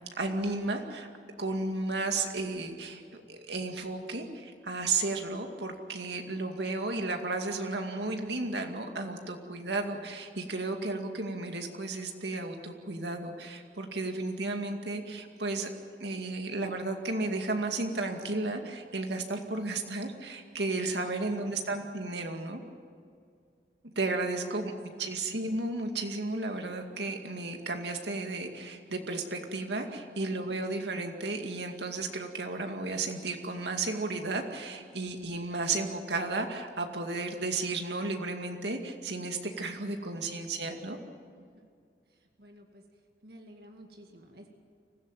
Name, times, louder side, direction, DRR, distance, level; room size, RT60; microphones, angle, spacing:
voice 1, 0.2-1.1 1.4-15.7 16.0-22.6 24.0-24.7 25.0-41.0, right 3 dB, 80° right, 4 dB, 2.3 m, -33 dB
voice 2, 21.1-21.7 24.4-25.1 30.1-30.5 39.9-40.5 41.4-41.7 42.1-42.8 43.2-44.5, equal, 60° right, 2 dB, 2.2 m, -53 dB
24.5 x 16.0 x 9.1 m, 2.2 s
head